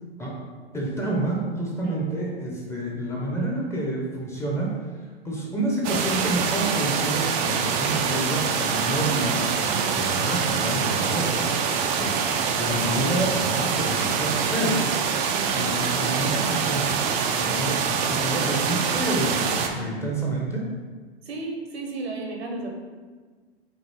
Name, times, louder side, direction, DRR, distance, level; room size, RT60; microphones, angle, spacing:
voice 1, 0.7-4.8 5.2-12.3 12.6-14.9 15.5-17.0 17.4-20.7, right 1 dB, 10° left, -3 dB, 0.7 m, -28 dB
sound 1, 5.8-19.7, right 6 dB, 30° right, 0.4 m, -25 dB
voice 2, 9.7-10.0 11.9-12.1 15.3-15.7 19.7-19.9 21.2-22.7, right 2 dB, 75° right, 1 dB, 1.1 m, -34 dB
5.3 x 2.7 x 3.5 m, 1.4 s
hypercardioid pair, 110°, 32 cm